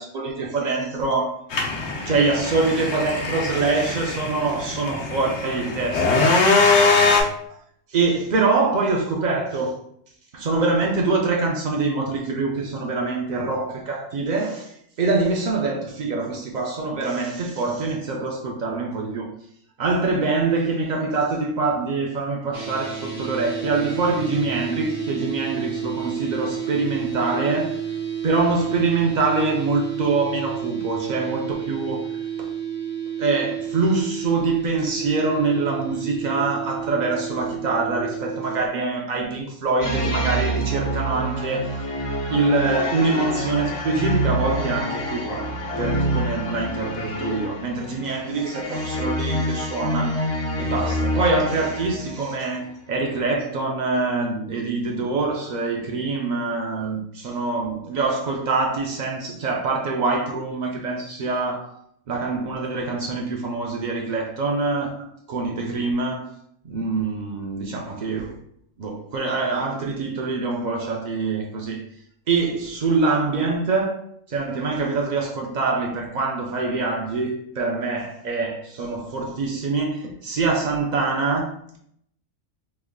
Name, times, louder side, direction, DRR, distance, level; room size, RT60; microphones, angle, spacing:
voice 1, 0.0-1.4 2.1-6.4 7.5-7.6 7.9-9.8 10.3-19.3 19.8-27.8 28.2-32.5 33.2-41.8 42.3-50.3 50.6-61.8 62.1-66.3 66.6-68.4 68.8-71.8 72.3-81.8, right 3 dB, 80° right, 0.4 m, -24 dB
sound 1, 1.5-7.2, left 3 dB, 75° left, 1.0 m, -22 dB
sound 2, 22.5-38.6, right 8 dB, 50° right, 1.0 m, -31 dB
sound 3, 39.8-52.3, equal, 50° left, 0.4 m, -27 dB
3.6 x 3.2 x 2.2 m
omnidirectional pair, 1.3 m